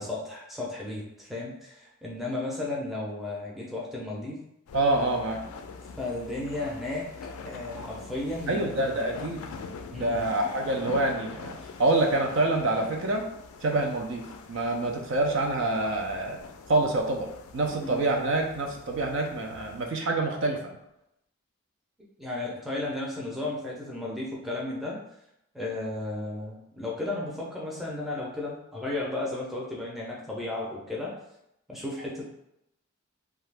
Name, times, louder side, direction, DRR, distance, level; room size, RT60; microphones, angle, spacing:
voice 1, 0.0-4.4 6.0-7.1 7.4-9.2 9.9-10.3 17.8-18.0 22.2-25.0 25.5-31.1 31.7-32.2, left 2 dB, ahead, -4 dB, 0.5 m, -34 dB
sound 1, 4.7-19.9, left 4 dB, 80° left, 0.3 m, -44 dB
voice 2, 4.7-5.4 8.5-9.4 9.9-13.2 13.6-14.2 14.5-16.4 16.7-17.3 17.5-20.6, right 2 dB, 55° right, 2 dB, 0.4 m, -26 dB
2.8 x 2.3 x 3.3 m, 0.81 s
head